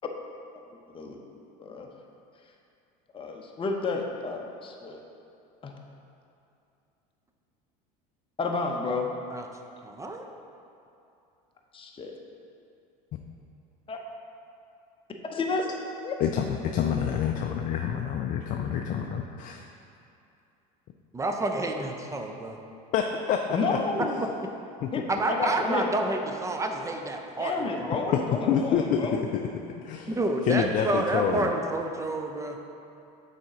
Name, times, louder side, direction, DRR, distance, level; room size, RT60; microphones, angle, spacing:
voice 1, 0.9-1.2 1.6-1.9 3.1-5.0 5.6-5.7 8.4-9.1 11.7-12.1 13.9-14.0 15.2-15.7 16.0-16.1 23.5-24.2 24.9-25.9 27.4-29.2, left 3 dB, 25° left, 2 dB, 0.8 m, -31 dB
voice 2, 9.8-10.2 21.1-22.6 24.2-24.3 25.1-28.2 30.1-32.6, right 2 dB, 15° right, 3 dB, 0.6 m, -29 dB
voice 3, 16.2-19.7 22.9-23.8 24.8-24.9 28.5-29.2 29.8-30.1 30.5-31.5, left 8 dB, 45° left, 3 dB, 0.4 m, -27 dB
6.2 x 4.2 x 4.9 m, 2.6 s
supercardioid pair, 95°, 20 cm